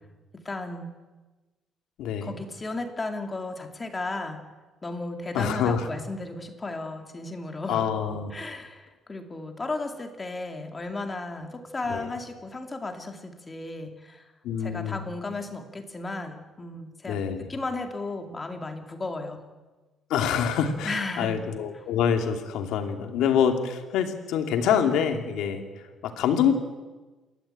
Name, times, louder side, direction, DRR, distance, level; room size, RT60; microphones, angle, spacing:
voice 1, 0.3-0.9 2.2-4.4 4.8-7.9 8.3-14.2 14.6-19.4 20.8-21.4, left 2 dB, 20° left, 5 dB, 2.5 m, -34 dB
voice 2, 2.0-2.3 5.3-5.9 7.7-8.3 11.9-12.1 14.4-15.0 17.1-17.5 20.1-26.5, left 8 dB, 80° left, 5 dB, 2.9 m, -26 dB
28.0 x 13.5 x 9.0 m, 1.2 s
cardioid pair, 140°, 0 cm